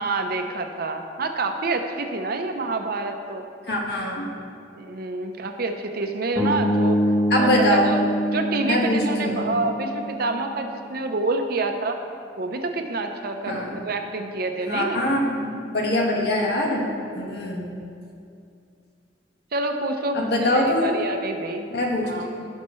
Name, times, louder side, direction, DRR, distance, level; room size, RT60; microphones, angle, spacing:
voice 1, 0.0-3.4 4.8-7.0 7.4-8.0 8.3-12.0 12.4-15.0 19.5-21.7 22.0-22.3, right 3 dB, 60° right, 5 dB, 0.8 m, -27 dB
voice 2, 3.7-4.3 7.3-7.9 8.6-9.5 13.5-13.7 14.7-17.7 20.1-20.9 21.7-22.1 22.4-22.5, left 1 dB, 65° left, -1 dB, 1.5 m, -23 dB
sound 1, 6.4-10.5, equal, 5° right, 1.6 m, -25 dB
17.0 x 5.7 x 3.2 m, 2.4 s
head